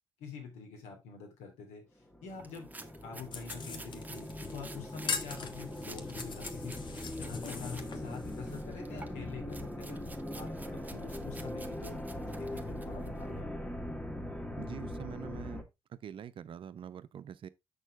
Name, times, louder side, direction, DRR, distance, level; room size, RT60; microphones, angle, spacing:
voice 1, 0.2-1.8 2.2-2.7 3.0-6.8 7.2-10.0 10.3-12.0 12.4-13.5, left 5 dB, 65° left, 2.9 m, -46 dB
sound 1, 2.1-15.6, left 1 dB, 10° left, 1.6 m, -41 dB
sound 2, 2.4-7.9 8.2-13.2, right 3 dB, 15° right, 1.2 m, -52 dB
sound 3, 3.3-8.6, left 5 dB, 40° left, 1.3 m, -42 dB
voice 2, 14.6-15.6 15.9-17.5, right 9 dB, 45° right, 0.7 m, -45 dB
7.3 x 6.4 x 3.5 m
figure-of-eight pair, 50°, 12 cm